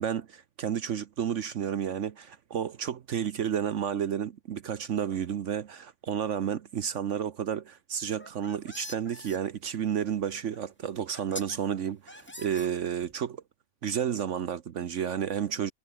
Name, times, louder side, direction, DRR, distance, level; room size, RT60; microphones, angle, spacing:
voice 1, 0.0-13.4 13.8-15.7, right 8 dB, 60° right, 1.1 m, -31 dB
sound 1, 8.1-9.4 10.5-10.6 11.1-11.6 12.1-13.1, left 1 dB, 10° left, 1.4 m, -43 dB
omnidirectional pair, 1.6 m